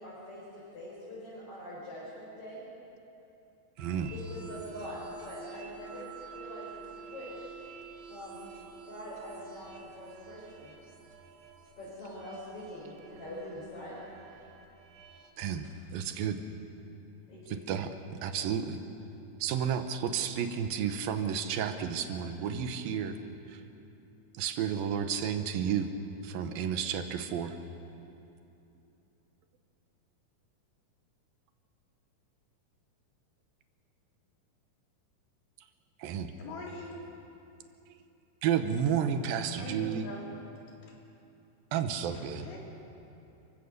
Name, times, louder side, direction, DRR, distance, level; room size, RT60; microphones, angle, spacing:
voice 1, 0.0-2.6 4.1-7.5 8.1-8.4 8.8-10.7 11.8-14.0 17.3-17.6, left 1 dB, 40° left, -9 dB, 5.9 m, -44 dB
sound 1, 3.8-15.3, right 6 dB, 50° right, 2.6 m, -49 dB
voice 2, 3.8-4.1 15.4-15.7 15.9-16.4 17.5-18.8 19.4-23.2 24.4-25.9 26.2-27.5 36.0-36.3 38.4-40.0 41.7-42.4, right 8 dB, 75° right, 8 dB, 2.8 m, -31 dB
voice 3, 36.4-37.0 39.6-40.3 40.8-40.9 42.1-42.6, left 2 dB, 80° left, -2 dB, 5.4 m, -43 dB
29.0 x 16.0 x 6.7 m, 2.9 s
omnidirectional pair, 4.3 m